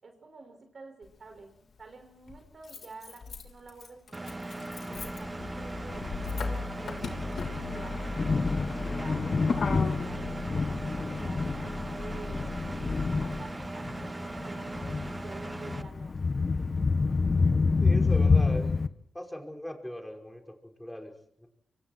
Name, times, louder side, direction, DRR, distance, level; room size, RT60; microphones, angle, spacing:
voice 1, 0.0-4.4 4.9-6.1 6.3-8.1 8.6-16.1, right 3 dB, 55° right, 6 dB, 5.8 m, -49 dB
Motor vehicle (road), 1.0-1.1 2.3-13.4, left 4 dB, 70° left, 3.5 m, -37 dB
Engine, 4.1-15.8, right 2 dB, 25° right, 1.0 m, -39 dB
Thunder, 5.2-18.9, left 4 dB, 45° left, 1.3 m, -28 dB
voice 2, 17.8-18.8 19.1-21.5, equal, 5° left, 3 dB, 5.2 m, -39 dB
26.0 x 25.0 x 4.6 m, 0.65 s
cardioid pair, 65°, 0 cm